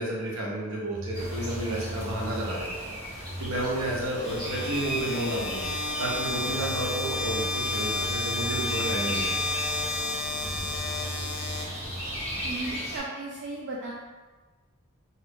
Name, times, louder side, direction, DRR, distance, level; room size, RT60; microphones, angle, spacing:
voice 1, 0.0-5.7 6.0-9.4, right 1 dB, 70° right, -4 dB, 0.8 m, -31 dB
sound 1, 0.9-12.0, equal, ahead, 1.0 m, -40 dB
sound 2, 1.1-13.0, equal, 20° right, 1.2 m, -38 dB
sound 3, 4.2-12.2, left 2 dB, 60° left, 0.4 m, -31 dB
voice 2, 12.4-13.9, right 2 dB, 55° right, -4 dB, 0.4 m, -36 dB
2.5 x 2.4 x 3.4 m, 1.3 s
head